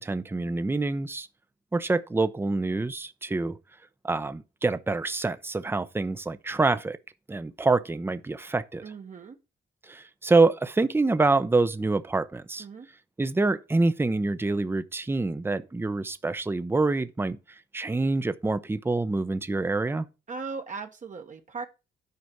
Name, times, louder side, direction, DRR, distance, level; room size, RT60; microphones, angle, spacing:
voice 1, 0.0-1.3 1.7-3.6 4.0-7.0 7.3-8.8 9.9-12.6 13.2-17.4 17.7-20.1, right 3 dB, 10° right, 0.6 m, -26 dB
voice 2, 8.8-9.4 12.6-12.9 20.3-21.7, right 4 dB, 40° right, 1.1 m, -38 dB
9.6 x 5.0 x 5.8 m
cardioid pair, 90°, 20 cm